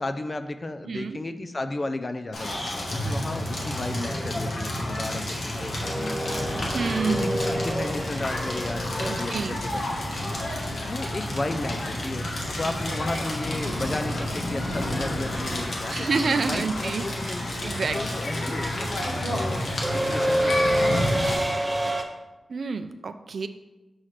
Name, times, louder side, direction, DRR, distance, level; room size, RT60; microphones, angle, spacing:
voice 1, 0.0-6.7 7.0-10.4 10.9-17.4 17.9-19.6 19.8-21.9, left 2 dB, 30° left, 9 dB, 0.4 m, -34 dB
voice 2, 0.9-1.2 6.7-7.4 9.1-9.6 15.9-17.3 17.6-18.0 22.5-23.5, right 4 dB, 65° right, 9 dB, 0.4 m, -28 dB
Crackle, 2.3-21.3, left 1 dB, 65° left, 1.2 m, -30 dB
sound 1, 5.8-9.9 12.3-12.4 13.7-14.0 14.2-22.0, right 1 dB, 15° right, 0.6 m, -29 dB
sound 2, 6.3-15.5, left 1 dB, 85° left, 1.8 m, -37 dB
6.3 x 3.2 x 5.7 m, 1.0 s
wide cardioid pair, 125°, 0 cm